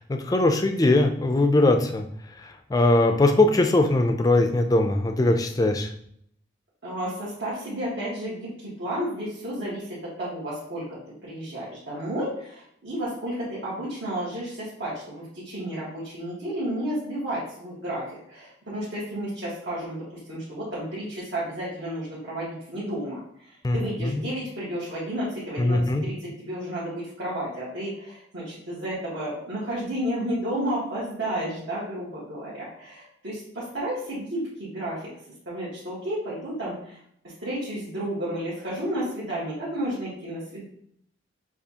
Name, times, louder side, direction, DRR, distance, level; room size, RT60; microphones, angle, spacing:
voice 1, 0.1-2.1 2.4-5.9 23.6-23.8 24.0-24.2 25.6-26.0, left 2 dB, 20° left, 5 dB, 0.3 m, -21 dB
voice 2, 6.8-35.0 35.4-37.0 37.4-40.6, right 1 dB, 70° right, -9 dB, 1.5 m, -32 dB
6.7 x 2.4 x 2.8 m, 0.69 s
head